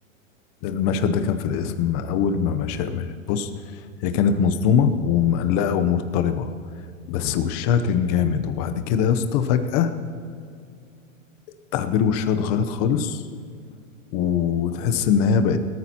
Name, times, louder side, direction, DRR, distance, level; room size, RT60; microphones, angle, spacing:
voice 1, 0.6-3.5 4.0-6.5 7.1-10.0 11.7-13.2 14.1-15.6, left 7 dB, 30° left, 9 dB, 0.7 m, -22 dB
20.5 x 14.0 x 2.9 m, 2.3 s
hypercardioid pair, 155°, 40 cm